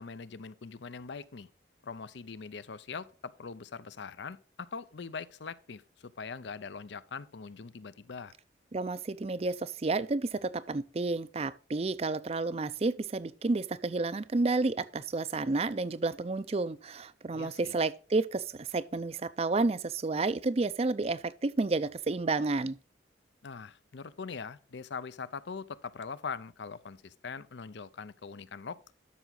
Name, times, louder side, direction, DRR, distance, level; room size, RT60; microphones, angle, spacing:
voice 1, 0.0-1.5 1.8-8.3 17.3-17.7 23.4-28.9, left 5 dB, 65° left, 0.6 m, -42 dB
voice 2, 8.7-22.8, right 3 dB, 30° right, 0.4 m, -31 dB
12.5 x 6.0 x 3.9 m
head